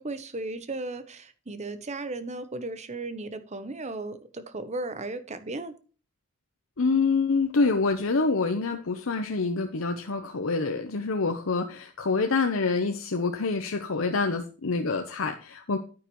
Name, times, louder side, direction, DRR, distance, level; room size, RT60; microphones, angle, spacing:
voice 1, 0.0-5.7, right 2 dB, 35° right, 1.0 m, -35 dB
voice 2, 6.8-15.8, left 4 dB, 75° left, 0.9 m, -26 dB
9.6 x 9.2 x 3.1 m
head